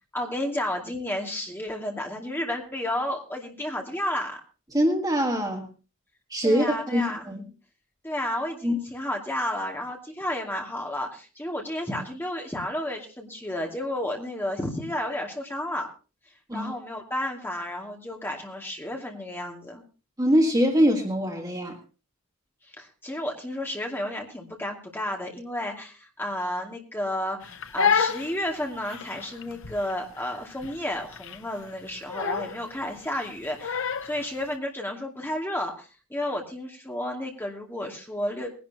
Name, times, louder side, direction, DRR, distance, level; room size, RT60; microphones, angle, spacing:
voice 1, 0.1-4.4 6.4-7.3 8.0-15.9 16.5-19.8 22.6-38.5, left 1 dB, 10° left, 1 dB, 2.4 m, -32 dB
voice 2, 4.7-5.7 6.3-7.5 8.6-8.8 16.5-16.7 20.2-21.8, equal, 15° right, 2 dB, 1.8 m, -23 dB
Crying sobbing, 27.4-34.3, left 6 dB, 65° left, 0.8 m, -29 dB
21.0 x 11.0 x 2.9 m, 0.33 s
head